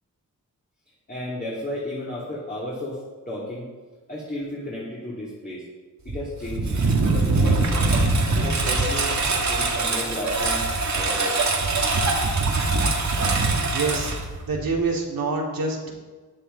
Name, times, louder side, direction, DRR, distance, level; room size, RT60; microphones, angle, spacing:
voice 1, 1.1-3.0 3.3-3.6 4.1-5.6 6.0-7.8 8.3-9.1 9.5-11.4, left 1 dB, 25° left, -7 dB, 3.2 m, -33 dB
Engine, 6.1-14.8, right 3 dB, 55° right, 1.9 m, -23 dB
voice 2, 13.7-14.1 14.5-15.9, right 3 dB, 80° right, 0 dB, 2.7 m, -26 dB
14.0 x 10.5 x 4.1 m, 1.3 s
wide cardioid pair, 145°, 34 cm